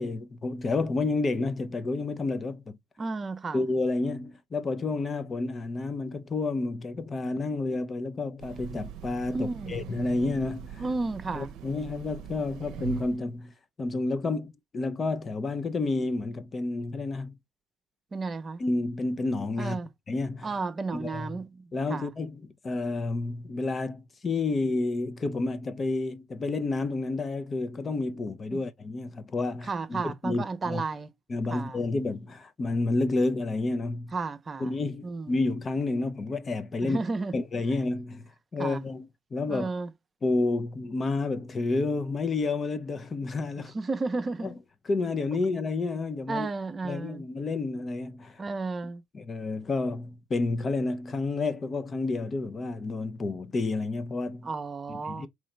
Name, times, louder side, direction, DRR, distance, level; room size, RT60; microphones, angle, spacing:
voice 1, 0.0-2.6 3.5-10.8 11.3-13.5 13.8-17.3 18.6-19.8 20.1-20.5 20.9-21.4 21.7-30.8 31.3-34.1 34.6-37.0 37.3-39.7 40.2-43.7 44.4-44.5 44.8-46.5 46.8-48.4 49.1-54.5 55.0-55.3, left 3 dB, 35° left, 0.6 m, -30 dB
voice 2, 3.0-3.6 9.3-9.7 10.8-11.5 18.1-18.6 19.6-19.9 20.4-22.1 28.5-28.6 29.7-31.1 31.5-31.8 34.1-34.8 35.0-35.3 36.8-37.4 38.6-38.8 39.5-39.9 43.7-44.5 46.3-47.2 48.4-49.0 54.4-55.3, right 3 dB, 30° right, 0.7 m, -33 dB
Train, 8.4-13.3, right 8 dB, 70° right, 0.6 m, -41 dB
3.7 x 3.1 x 3.3 m
supercardioid pair, 80°, 0 cm